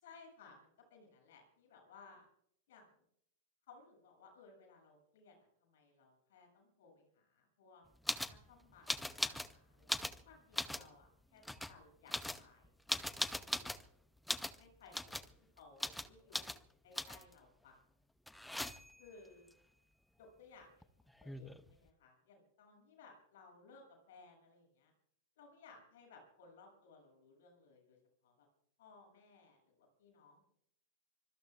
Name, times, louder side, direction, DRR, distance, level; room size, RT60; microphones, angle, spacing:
voice 1, 0.0-2.3 2.7-2.9 3.7-7.9 8.3-12.7 13.2-13.7 14.6-15.3 15.6-16.5 16.8-17.8 19.0-19.5 20.2-20.9 21.2-24.9 25.4-28.0 28.2-28.5 28.8-30.5, left 4 dB, 55° left, 2 dB, 7.7 m, -61 dB
sound 1, 8.1-8.4 8.9-9.5 9.8-10.9 11.4-11.7 12.1-13.9 14.3-14.6 14.9-15.3 15.8-16.1 16.3-16.6 17.0-17.3 18.3-19.0 20.8-20.9 21.1-21.7, left 1 dB, 5° left, 0.8 m, -39 dB
25.0 x 22.5 x 2.5 m, 0.71 s
figure-of-eight pair, 90°, 0 cm